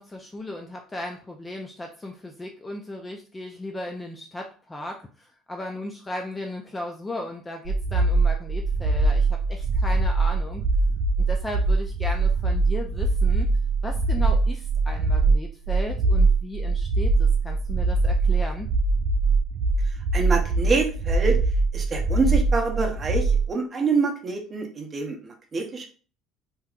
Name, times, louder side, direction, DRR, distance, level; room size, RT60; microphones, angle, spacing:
voice 1, 0.0-10.6 11.2-13.5 13.8-18.7, left 1 dB, 10° left, 2 dB, 0.3 m, -36 dB
sound 1, 7.6-23.5, right 3 dB, 60° right, 0.6 m, -22 dB
voice 2, 19.8-21.4 21.7-25.9, right 4 dB, 20° right, 2 dB, 0.6 m, -26 dB
3.5 x 2.7 x 2.3 m, 0.39 s
cardioid pair, 160°, 0 cm